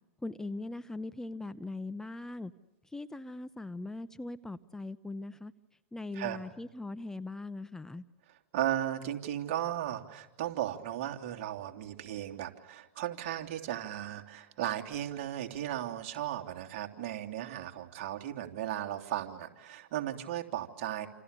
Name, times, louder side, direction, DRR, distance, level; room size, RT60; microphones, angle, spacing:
voice 1, 0.2-2.5 2.9-5.5 5.9-8.0, left 2 dB, 5° left, 12 dB, 0.8 m, -40 dB
voice 2, 8.5-21.1, right 12 dB, 55° right, 3 dB, 3.0 m, -36 dB
28.5 x 28.0 x 6.8 m, 1.0 s
hypercardioid pair, 110°, 8 cm